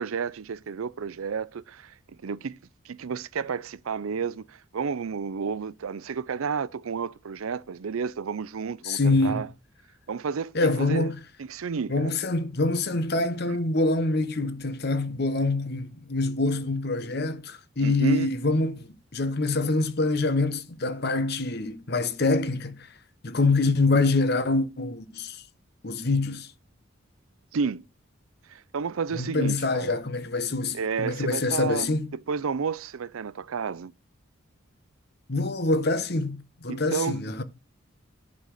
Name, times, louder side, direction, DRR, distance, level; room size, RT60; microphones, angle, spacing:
voice 1, 0.0-1.9 2.2-2.6 2.8-9.5 10.1-10.5 10.8-11.1 11.4-12.2 13.5-13.6 17.8-18.3 27.5-27.8 28.5-30.0 30.7-31.9 32.3-33.9 36.7-37.2, right 5 dB, 85° right, 0.5 m, -31 dB
voice 2, 8.8-9.4 10.5-11.1 11.9-18.9 19.1-22.9 23.2-25.4 25.8-26.5 29.1-32.1 35.3-37.4, left 3 dB, 50° left, 1.0 m, -25 dB
11.5 x 4.1 x 6.4 m
head